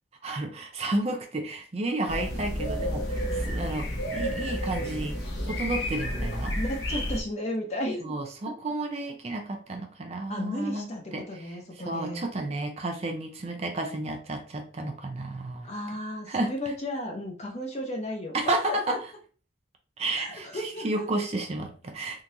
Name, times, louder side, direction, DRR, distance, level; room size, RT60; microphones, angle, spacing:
voice 1, 0.2-5.2 5.5-6.6 8.0-10.9 11.1-11.6 11.8-15.7 16.3-16.5 18.3-19.0 20.0-22.2, right 2 dB, 35° right, 4 dB, 0.5 m, -32 dB
sound 1, 2.1-7.2, equal, 70° left, 0.9 m, -31 dB
voice 2, 6.5-8.2 8.5-8.6 10.3-12.3 15.6-19.0 20.1-21.0, left 1 dB, 35° left, 1 dB, 0.8 m, -34 dB
3.7 x 2.5 x 2.7 m, 0.38 s
head